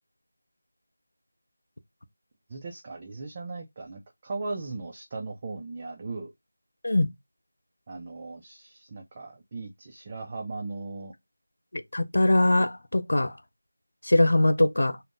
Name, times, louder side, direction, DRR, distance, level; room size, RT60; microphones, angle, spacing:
voice 1, 2.5-6.3 7.9-11.1, right 3 dB, 25° right, 0.3 m, -38 dB
voice 2, 11.7-13.3 14.0-15.0, left 1 dB, 75° left, 0.4 m, -22 dB
3.4 x 2.0 x 2.5 m
figure-of-eight pair, 170°, 0 cm